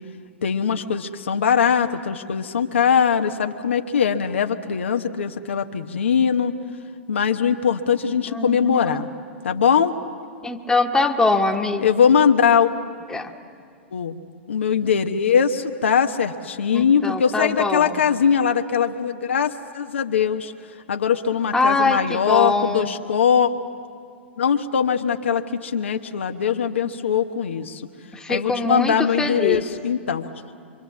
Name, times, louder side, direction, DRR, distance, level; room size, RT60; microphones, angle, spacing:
voice 1, 0.4-6.5 7.1-9.1 9.4-9.9 11.8-12.7 13.9-14.2 14.5-20.5 20.9-23.5 24.4-27.8 28.3-30.3, left 7 dB, 75° left, 5 dB, 1.0 m, -21 dB
voice 2, 8.3-9.0 10.4-11.8 13.1-13.3 16.7-18.0 21.5-22.9 28.1-29.6, left 3 dB, 10° left, 3 dB, 1.5 m, -23 dB
25.5 x 25.0 x 7.4 m, 2.2 s
figure-of-eight pair, 105°, 7 cm